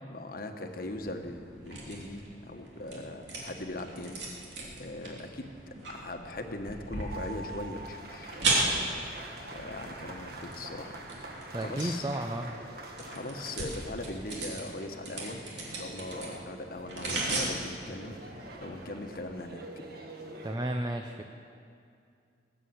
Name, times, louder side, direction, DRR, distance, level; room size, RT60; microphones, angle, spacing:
voice 1, 0.0-8.4 9.4-10.9 11.3-12.1 13.0-19.6, left 2 dB, 55° left, 5 dB, 1.2 m, -40 dB
sound 1, 0.7-19.2, right 2 dB, 85° right, 2.9 m, -37 dB
sound 2, 7.1-20.6, right 2 dB, 60° right, 1.7 m, -46 dB
voice 2, 11.5-12.5 20.4-21.2, right 1 dB, 25° right, 4 dB, 0.6 m, -32 dB
19.0 x 8.3 x 8.0 m, 2.4 s
head